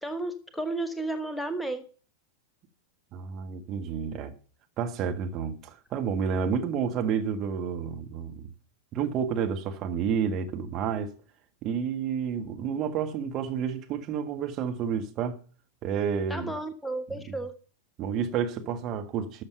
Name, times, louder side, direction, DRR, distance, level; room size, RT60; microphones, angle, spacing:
voice 1, 0.0-1.9 16.3-17.5, right 2 dB, 5° left, 1.1 m, -33 dB
voice 2, 3.1-4.3 4.8-8.5 8.9-11.1 11.6-15.4 15.8-16.6 17.3-17.4 18.0-19.4, right 7 dB, 35° right, 1.6 m, -30 dB
13.0 x 6.5 x 6.7 m
figure-of-eight pair, 90°, 0 cm